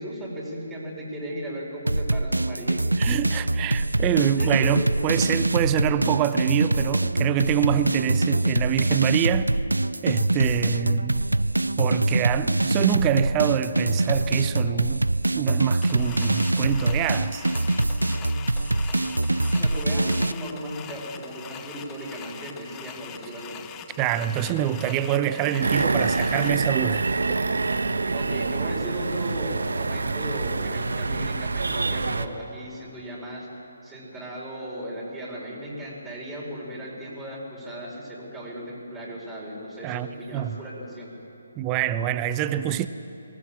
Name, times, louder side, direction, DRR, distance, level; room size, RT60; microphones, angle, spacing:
voice 1, 0.0-2.8 3.6-3.7 4.3-4.7 19.5-23.7 28.1-33.5 33.8-41.1, equal, 5° right, 4.8 m, -36 dB
sound 1, 1.9-20.3, right 2 dB, 90° right, 0.5 m, -24 dB
voice 2, 3.0-9.5 10.0-11.3 11.8-15.0 15.3-17.4 24.0-27.4 39.8-40.1 40.3-40.6 41.6-42.9, right 11 dB, 20° right, 0.6 m, -26 dB
sound 2, 15.8-26.5, left 10 dB, 20° left, 0.8 m, -42 dB
sound 3, 25.6-32.3, right 3 dB, 75° right, 1.1 m, -26 dB
23.0 x 18.0 x 7.5 m
figure-of-eight pair, 145°, 0 cm